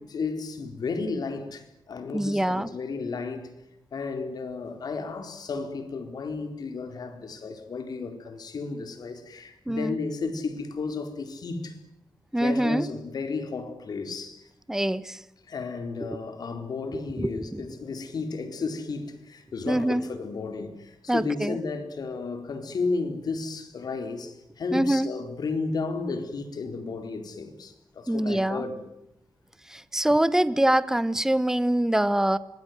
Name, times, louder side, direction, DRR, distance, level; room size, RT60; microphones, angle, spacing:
voice 1, 0.0-3.6 3.9-11.8 12.4-14.5 15.4-28.8, left 4 dB, 65° left, 4.2 m, -33 dB
voice 2, 2.1-2.7 9.7-10.0 12.3-12.9 14.7-15.2 16.0-16.1 16.9-17.7 19.7-20.0 21.1-21.6 24.7-25.1 28.1-28.6 29.7-32.4, right 1 dB, 5° right, 1.2 m, -24 dB
26.0 x 20.5 x 9.5 m
cardioid pair, 90°, 7 cm